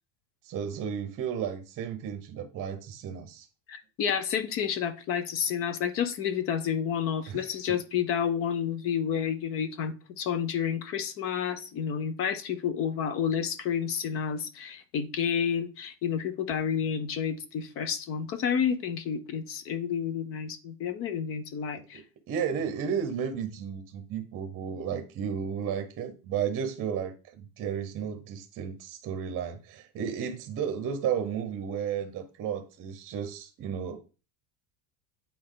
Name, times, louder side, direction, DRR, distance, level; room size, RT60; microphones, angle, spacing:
voice 1, 0.4-3.5 7.3-7.5 21.9-34.0, right 7 dB, 30° right, 7 dB, 0.8 m, -33 dB
voice 2, 3.7-22.0, left 8 dB, 30° left, 13 dB, 0.4 m, -30 dB
8.5 x 4.2 x 3.8 m, 0.34 s
cardioid pair, 170°, 46 cm